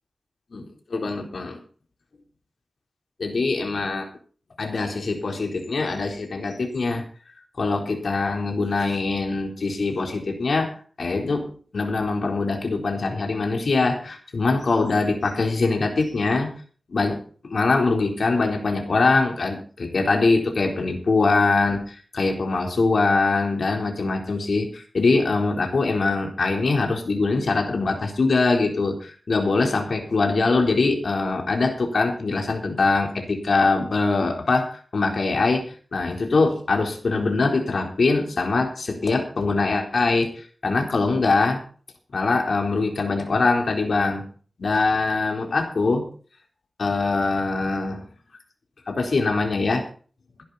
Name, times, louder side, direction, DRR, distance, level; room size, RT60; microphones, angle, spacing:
voice 1, 0.9-1.6 3.2-4.0 4.6-7.0 7.6-10.7 11.0-16.5 16.9-17.2 17.4-21.8 22.1-41.6 42.1-44.2 44.6-46.1 46.8-48.0 48.9-49.8, left 3 dB, 75° left, 2 dB, 4.1 m, -23 dB
16.5 x 11.5 x 4.3 m, 0.41 s
wide cardioid pair, 75°, 0 cm